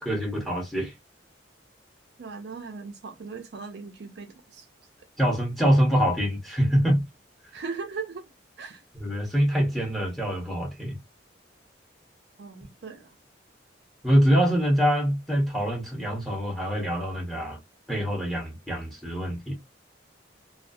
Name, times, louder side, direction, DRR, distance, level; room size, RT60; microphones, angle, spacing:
voice 1, 0.0-0.9 5.2-7.0 8.9-11.0 14.0-17.6 17.9-19.5, equal, ahead, 0.9 m, -24 dB
voice 2, 2.2-4.7 7.5-8.3 8.6-8.8 12.4-13.1, right 4 dB, 60° right, 0.5 m, -38 dB
2.3 x 2.2 x 2.5 m
head